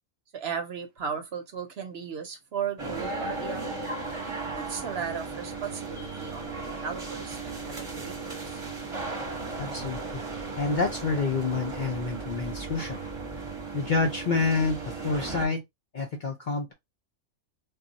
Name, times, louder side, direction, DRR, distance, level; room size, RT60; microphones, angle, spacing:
voice 1, 0.3-3.8 4.5-8.6, right 7 dB, 60° right, 0.9 m, -36 dB
sound 1, 2.8-15.5, right 3 dB, 30° right, 0.9 m, -36 dB
voice 2, 9.6-10.2 10.6-13.0 13.7-15.6 15.9-16.7, left 4 dB, 50° left, 0.6 m, -28 dB
2.3 x 2.3 x 3.9 m
omnidirectional pair, 1.3 m